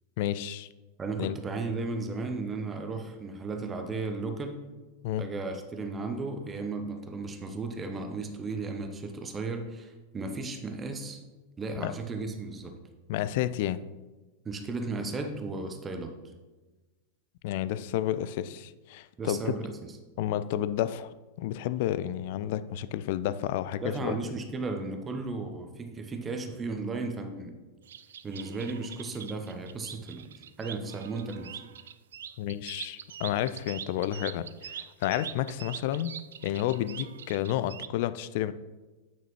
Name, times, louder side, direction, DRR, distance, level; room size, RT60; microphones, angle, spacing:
voice 1, 0.2-0.7 1.2-1.4 5.0-5.3 11.8-11.9 13.1-13.8 17.4-19.4 20.2-24.2 32.4-36.1 36.4-38.5, left 12 dB, 50° left, 14 dB, 0.3 m, -31 dB
voice 2, 1.0-4.6 5.2-11.2 11.6-12.8 14.4-16.2 19.2-19.9 23.8-27.6 28.2-30.3 30.6-31.5, right 3 dB, 20° right, 5 dB, 0.9 m, -35 dB
sound 1, 27.8-37.9, right 9 dB, 65° right, 0.3 m, -43 dB
9.2 x 6.0 x 3.1 m, 1.2 s
figure-of-eight pair, 90°, 0 cm